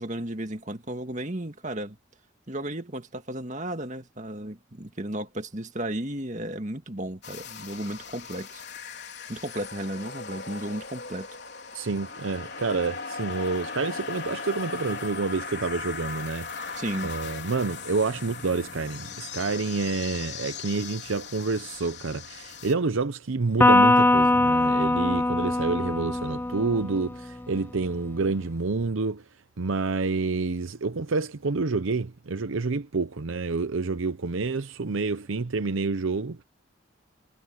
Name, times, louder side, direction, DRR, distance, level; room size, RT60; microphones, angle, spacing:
voice 1, 0.0-2.0 2.5-8.6 9.3-11.3 16.8-17.1, right 1 dB, 35° right, 2.0 m, -34 dB
sound 1, 7.2-22.7, left 5 dB, 55° left, 4.3 m, -38 dB
voice 2, 11.7-16.7 17.0-29.2 29.6-36.4, right 4 dB, 75° right, 0.7 m, -28 dB
Electric guitar, 23.6-27.1, left 2 dB, 10° left, 0.3 m, -21 dB
head